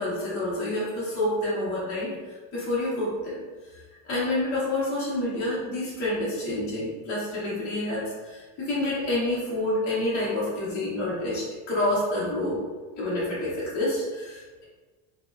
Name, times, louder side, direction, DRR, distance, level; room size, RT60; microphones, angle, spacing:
voice 1, 0.0-2.1 2.5-3.4 4.1-12.6 13.0-14.6, left 1 dB, 30° left, -9 dB, 0.6 m, -28 dB
2.8 x 2.0 x 2.3 m, 1.3 s
cardioid pair, 160°, 48 cm